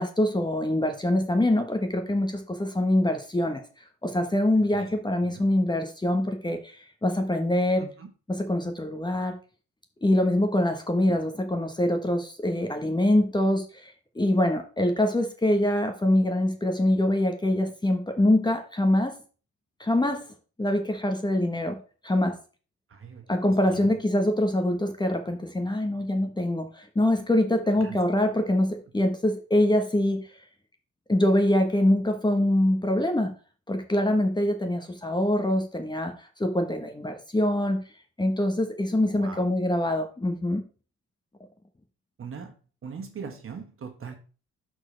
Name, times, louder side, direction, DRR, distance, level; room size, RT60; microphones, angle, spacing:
voice 1, 0.0-3.6 4.0-7.8 8.3-9.3 10.0-19.2 19.8-20.2 20.6-21.8 22.0-22.4 23.3-30.3 31.1-33.3 33.7-37.8 38.2-40.6, left 1 dB, 15° left, 5 dB, 1.2 m, -24 dB
voice 2, 22.9-23.4 23.7-24.0 27.8-28.0 39.1-39.5 42.2-42.5 42.8-44.1, right 6 dB, 45° right, 5 dB, 1.7 m, -40 dB
11.5 x 4.4 x 3.3 m, 0.38 s
cardioid pair, 90°, 30 cm